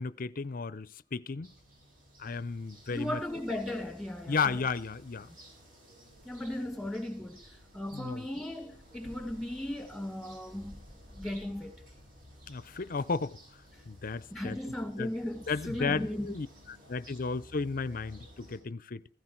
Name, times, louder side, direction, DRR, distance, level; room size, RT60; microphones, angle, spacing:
voice 1, 0.0-1.5 2.2-3.2 4.3-5.3 7.9-8.3 12.5-13.4 13.9-14.6 15.0-15.1 15.5-16.5 16.9-19.1, left 4 dB, 45° left, 0.6 m, -34 dB
sound 1, 1.4-18.6, equal, 45° right, 7.5 m, -54 dB
voice 2, 2.9-4.6 6.2-10.8 11.1-11.8 14.3-16.3, left 1 dB, ahead, 2.2 m, -37 dB
16.5 x 15.0 x 4.5 m
head